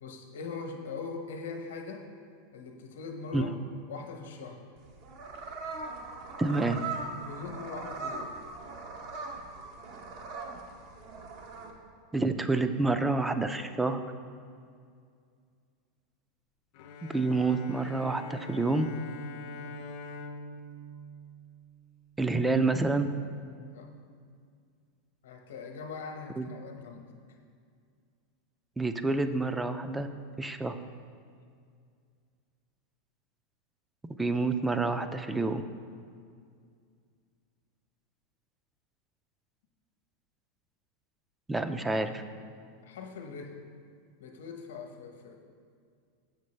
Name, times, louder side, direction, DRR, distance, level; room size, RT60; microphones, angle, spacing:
voice 1, 0.0-2.0 2.5-3.5 3.9-4.6 7.1-8.4 19.6-19.8 23.7-23.9 25.2-27.1 42.8-43.6 44.2-45.4, left 4 dB, 90° left, 3 dB, 0.9 m, -41 dB
sound 1, 4.8-11.7, right 3 dB, 55° right, 0.8 m, -40 dB
voice 2, 6.4-6.8 12.1-14.0 17.0-18.9 22.2-23.1 26.4-26.5 28.8-30.1 30.4-30.8 34.2-35.6 41.5-42.2, right 3 dB, 10° right, 10 dB, 0.3 m, -28 dB
Bowed string instrument, 16.7-22.2, left 2 dB, 60° left, 0.5 m, -44 dB
7.2 x 6.5 x 3.2 m, 2.2 s
supercardioid pair, 125°, 0 cm